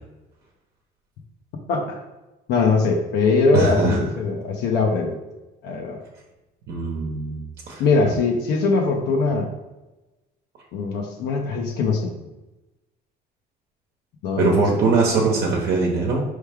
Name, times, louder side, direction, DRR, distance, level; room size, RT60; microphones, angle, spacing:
voice 1, 1.7-2.0 2.5-5.1 5.6-6.0 7.8-9.5 10.7-12.1 14.2-14.8, left 4 dB, 80° left, 1 dB, 0.7 m, -21 dB
voice 2, 3.5-4.0 6.7-7.4 7.7-7.8 14.4-16.2, right 4 dB, 70° right, -2 dB, 0.9 m, -21 dB
4.5 x 3.2 x 3.4 m, 1.0 s
cardioid pair, 110°, 17 cm